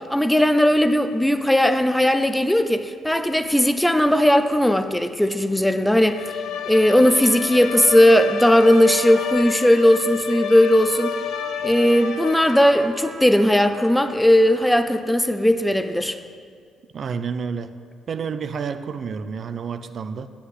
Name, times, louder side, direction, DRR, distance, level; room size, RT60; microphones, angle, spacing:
voice 1, 0.0-6.2 6.6-11.1 11.6-16.2, equal, 5° left, 9 dB, 0.6 m, -17 dB
Bowed string instrument, 5.9-13.0, left 9 dB, 80° left, 0.6 m, -30 dB
Trumpet, 6.5-14.9, right 3 dB, 80° right, 1.7 m, -41 dB
voice 2, 16.9-17.7 18.1-20.3, right 6 dB, 55° right, 10 dB, 0.5 m, -29 dB
8.3 x 8.0 x 8.0 m, 2.1 s
cardioid pair, 90°, 0 cm